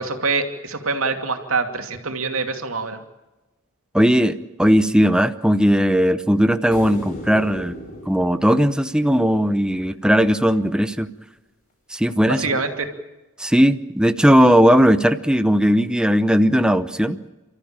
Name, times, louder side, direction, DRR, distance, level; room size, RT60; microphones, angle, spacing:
voice 1, 0.0-3.0 12.3-12.9, right 4 dB, 80° right, 5 dB, 2.6 m, -25 dB
voice 2, 3.9-7.8 8.1-11.1 11.9-12.4 13.4-17.2, equal, 5° right, 10 dB, 0.8 m, -17 dB
sound 1, 6.7-10.0 12.6-12.7, left 1 dB, 45° left, 5.6 m, -37 dB
29.5 x 14.0 x 8.8 m, 1.1 s
head